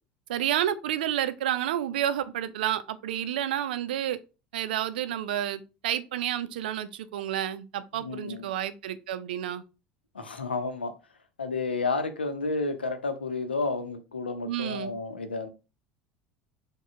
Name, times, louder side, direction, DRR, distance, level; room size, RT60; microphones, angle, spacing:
voice 1, 0.3-4.2 4.5-9.6 14.4-14.9, right 11 dB, 65° right, 0.4 m, -30 dB
voice 2, 8.0-8.5 10.1-10.9 11.4-15.5, left 3 dB, 80° left, 0.6 m, -31 dB
4.8 x 2.2 x 4.7 m
figure-of-eight pair, 70°, 5 cm